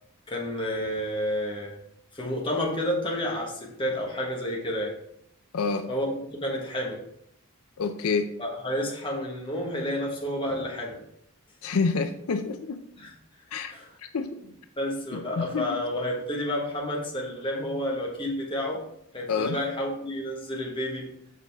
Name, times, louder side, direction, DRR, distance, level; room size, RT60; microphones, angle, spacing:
voice 1, 0.3-1.7 2.1-4.9 5.9-7.0 8.4-11.0 13.0-13.1 13.7-13.9 14.8-18.8 19.1-21.1, left 1 dB, 20° left, -1 dB, 1.3 m, -30 dB
voice 2, 5.5-5.9 7.8-8.3 11.6-12.8 13.5-13.7 14.0-14.4 15.1-15.8 19.3-19.6, left 4 dB, 75° left, 8 dB, 0.5 m, -28 dB
6.5 x 5.2 x 3.5 m, 0.74 s
head